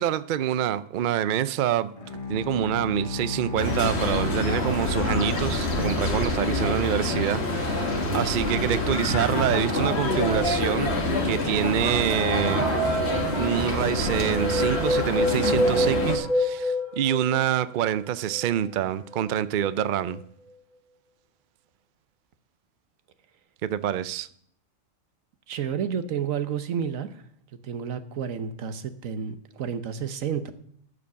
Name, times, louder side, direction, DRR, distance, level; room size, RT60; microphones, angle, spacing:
voice 1, 0.0-1.9 2.3-10.9 11.2-12.7 13.3-20.2 23.6-24.3, right 11 dB, 60° right, 0.5 m, -26 dB
Bowed string instrument, 2.0-6.4, left 3 dB, 30° left, 1.1 m, -34 dB
sound 1, 3.6-16.2, left 2 dB, 55° left, 1.8 m, -26 dB
sound 2, 12.1-17.5 18.0-18.1 18.3-18.4 19.1-19.2 19.6-19.9, equal, 5° left, 3.1 m, -27 dB
voice 2, 25.5-27.2 27.6-30.5, right 7 dB, 85° right, 1.3 m, -30 dB
14.0 x 5.1 x 6.8 m
omnidirectional pair, 1.4 m